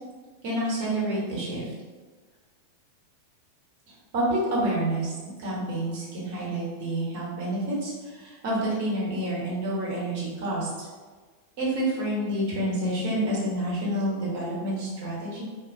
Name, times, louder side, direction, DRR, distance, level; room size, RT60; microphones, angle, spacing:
voice 1, 0.4-1.7 4.1-5.1 5.4-10.9 11.6-15.4, right 1 dB, 50° right, -5 dB, 0.9 m, -28 dB
2.5 x 2.1 x 2.6 m, 1.4 s
figure-of-eight pair, 90°, 0 cm